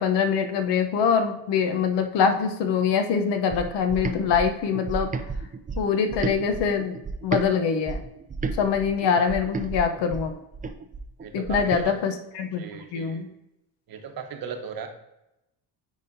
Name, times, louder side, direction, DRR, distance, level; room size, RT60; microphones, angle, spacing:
voice 1, 0.0-5.1 5.8-7.0 7.2-8.0 8.5-10.4 11.3-12.6 12.9-13.3, left 6 dB, 75° left, 6 dB, 1.0 m, -24 dB
sound 1, 3.5-7.5 7.9-11.9, right 4 dB, 20° right, 0.4 m, -33 dB
voice 2, 11.2-12.0 12.6-13.3 13.9-14.9, right 6 dB, 55° right, 6 dB, 1.0 m, -37 dB
9.6 x 4.1 x 2.7 m, 0.88 s
cardioid pair, 90°, 42 cm